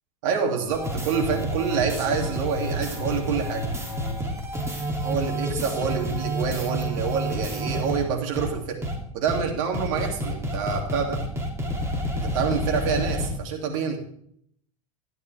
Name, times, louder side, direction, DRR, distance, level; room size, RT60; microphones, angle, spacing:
voice 1, 0.2-3.6 5.0-8.8 9.1-11.2 12.1-14.0, right 6 dB, 70° right, 2 dB, 2.8 m, -27 dB
sound 1, 0.7-8.0 8.4-8.5 8.8-8.9 9.3-9.4 9.7-13.3, equal, 15° right, 2.9 m, -29 dB
13.0 x 11.0 x 3.5 m, 0.67 s
supercardioid pair, 110°, 18 cm